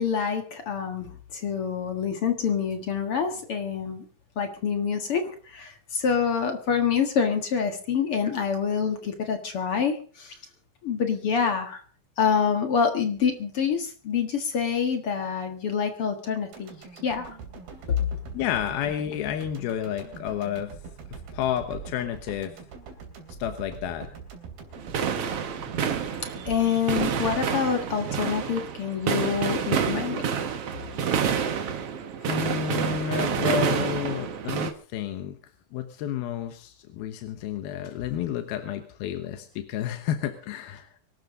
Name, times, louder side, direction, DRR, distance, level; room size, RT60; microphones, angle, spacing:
voice 1, 0.0-4.0 4.4-10.4 10.8-11.8 12.2-16.7 17.0-17.3 17.9-18.0 26.5-30.3, left 6 dB, 50° left, 6 dB, 2.0 m, -26 dB
sound 1, 16.5-28.8 29.1-29.2, right 5 dB, 75° right, 5.0 m, -43 dB
voice 2, 18.3-20.8 21.1-22.5 23.4-24.1 31.5-31.7 32.2-35.4 35.7-40.9, left 10 dB, 90° left, 8 dB, 3.1 m, -31 dB
sound 2, 24.7-34.7, right 7 dB, 55° right, 1.9 m, -28 dB
24.5 x 12.5 x 3.8 m, 0.40 s
omnidirectional pair, 4.2 m